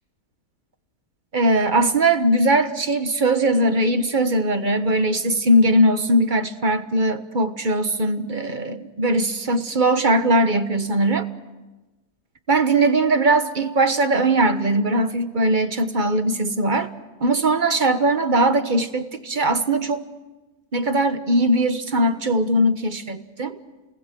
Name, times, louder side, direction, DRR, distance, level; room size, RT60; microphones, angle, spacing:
voice 1, 1.3-11.3 12.5-16.9 17.2-20.1 20.7-23.5, right 1 dB, 35° right, 9 dB, 1.3 m, -20 dB
28.5 x 20.0 x 7.7 m, 1.1 s
omnidirectional pair, 1.7 m